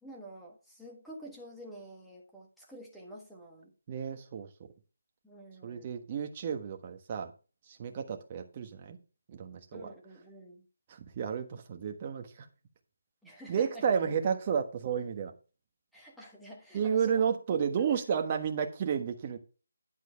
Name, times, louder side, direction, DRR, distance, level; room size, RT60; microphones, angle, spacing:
voice 1, 0.0-3.7 5.2-5.9 9.7-10.7 13.2-13.8 15.9-17.2 17.8-18.0, right 1 dB, ahead, 1.4 m, -49 dB
voice 2, 3.9-4.5 5.6-7.3 7.7-9.0 9.3-9.9 10.9-12.5 13.5-15.3 16.7-19.4, right 7 dB, 25° right, 1.3 m, -32 dB
10.5 x 4.5 x 5.6 m
figure-of-eight pair, 170°, 0 cm